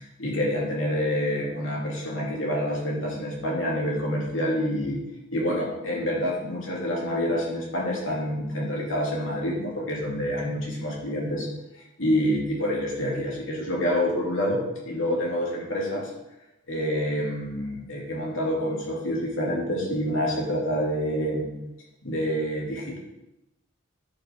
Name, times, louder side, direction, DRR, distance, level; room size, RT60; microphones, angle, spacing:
voice 1, 0.2-5.0 5.3-11.5 12.0-16.1 16.7-21.5 22.0-23.0, equal, 70° left, -3 dB, 3.0 m, -27 dB
11.5 x 5.6 x 4.7 m, 0.92 s
head